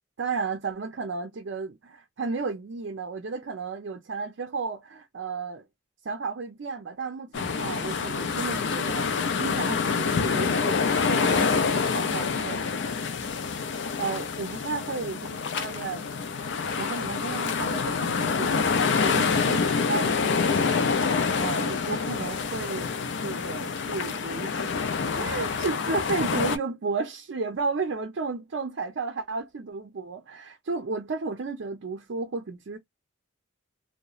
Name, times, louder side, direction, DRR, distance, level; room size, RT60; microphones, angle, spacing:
voice 1, 0.2-5.7 6.0-10.8 11.1-12.6 13.6-16.1 16.8-22.9 23.2-24.7 25.2-32.8, right 4 dB, 60° right, 0.5 m, -33 dB
sound 1, 7.3-26.6, left 5 dB, 60° left, 0.4 m, -27 dB
2.9 x 2.1 x 2.3 m
head